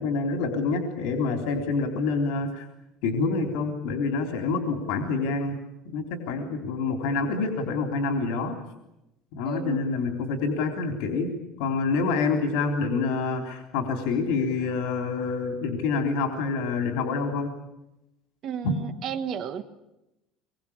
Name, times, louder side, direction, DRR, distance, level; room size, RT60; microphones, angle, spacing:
voice 1, 0.0-2.6 3.0-5.5 5.9-8.6 9.3-11.3 11.6-17.5 18.6-18.8, left 4 dB, 75° left, 4 dB, 3.7 m, -27 dB
voice 2, 9.4-9.8 18.4-19.6, right 8 dB, 40° right, 9 dB, 1.3 m, -32 dB
25.5 x 22.5 x 8.7 m, 0.91 s
cardioid pair, 165°, 0 cm